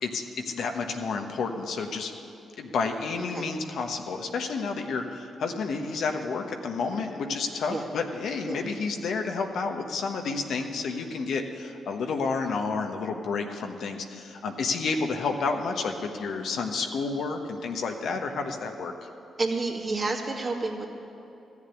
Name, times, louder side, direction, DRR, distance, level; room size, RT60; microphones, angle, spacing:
voice 1, 0.0-2.1 2.6-18.9, left 4 dB, 75° left, 4 dB, 1.2 m, -30 dB
voice 2, 19.4-20.9, right 3 dB, 45° right, 0 dB, 2.2 m, -29 dB
14.0 x 7.3 x 9.9 m, 2.9 s
supercardioid pair, 50°, 0 cm